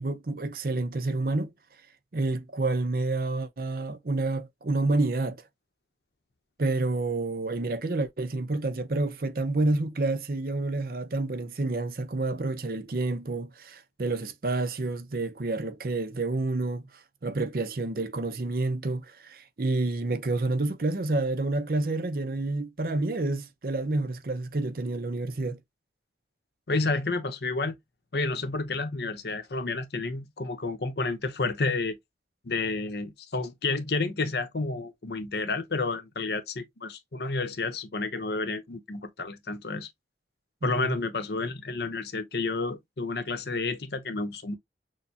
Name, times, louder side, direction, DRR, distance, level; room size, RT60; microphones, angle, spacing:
voice 1, 0.0-1.5 2.1-5.4 6.6-16.9 17.2-25.6 40.6-41.0, right 2 dB, 55° right, 0.6 m, -29 dB
voice 2, 26.7-27.8 28.1-32.0 32.4-39.9 40.6-44.6, left 3 dB, 65° left, 0.8 m, -30 dB
6.4 x 2.1 x 2.7 m
head